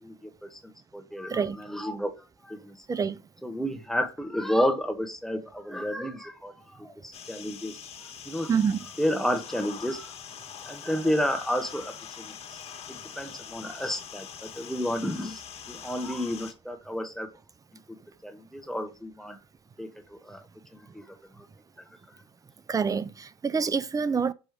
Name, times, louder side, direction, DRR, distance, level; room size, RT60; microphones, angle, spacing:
voice 1, 0.0-2.1 2.4-2.8 3.4-8.5 9.0-10.1 10.7-12.3 12.9-15.4 15.7-17.3 18.2-19.4 19.8-20.4 20.7-21.5, equal, 5° left, 1.2 m, -31 dB
sound 1, 7.1-16.5, left 8 dB, 45° left, 1.6 m, -43 dB
voice 2, 8.5-8.9 22.7-24.3, right 6 dB, 25° right, 0.5 m, -26 dB
6.3 x 3.1 x 5.0 m
hypercardioid pair, 70°, 14 cm